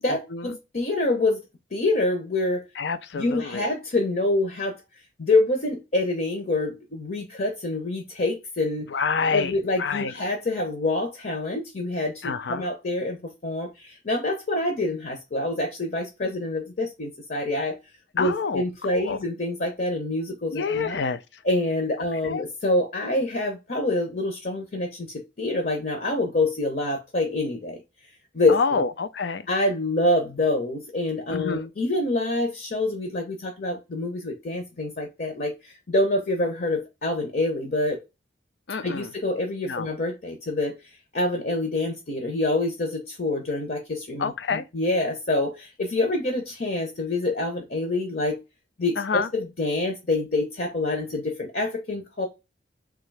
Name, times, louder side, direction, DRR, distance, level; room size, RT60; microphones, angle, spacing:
voice 1, 0.0-1.4 1.7-2.6 3.1-4.7 5.2-8.9 9.3-17.8 18.1-21.0 21.4-27.8 28.3-28.8 29.5-38.0 38.8-40.8 41.1-48.4 48.8-52.3, left 2 dB, 50° left, 0.8 m, -26 dB
voice 2, 2.8-3.7 8.9-9.5 9.8-10.1 12.2-12.6 18.2-18.6 18.9-19.2 20.5-21.2 22.2-22.4 28.5-29.4 31.3-31.7 38.7-39.1 39.7-39.9 44.2-44.7 49.0-49.3, left 5 dB, 75° left, 0.5 m, -27 dB
3.6 x 2.9 x 3.2 m
head